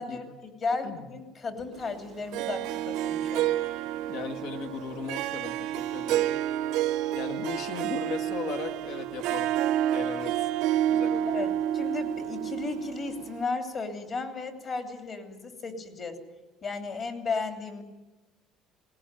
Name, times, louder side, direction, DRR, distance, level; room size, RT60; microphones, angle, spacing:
voice 1, 0.0-3.5 11.3-16.2 16.6-17.8, left 4 dB, 35° left, 5 dB, 3.1 m, -34 dB
Harp, 2.3-13.4, right 12 dB, 75° right, 0.7 m, -29 dB
voice 2, 4.1-6.4 7.1-9.5 9.9-10.5 10.9-11.5, left 5 dB, 70° left, 5 dB, 2.1 m, -37 dB
19.5 x 19.0 x 9.1 m, 1.1 s
cardioid pair, 140°, 0 cm